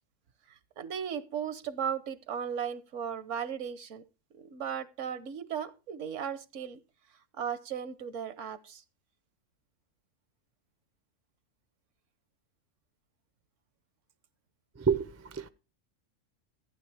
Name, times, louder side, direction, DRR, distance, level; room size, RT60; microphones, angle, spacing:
voice 1, 0.5-4.0 4.3-6.8 7.3-8.8, right 8 dB, 75° right, 1.2 m, -36 dB
voice 2, 14.8-15.5, right 6 dB, 25° right, 0.3 m, -29 dB
14.5 x 9.5 x 3.4 m
omnidirectional pair, 1.3 m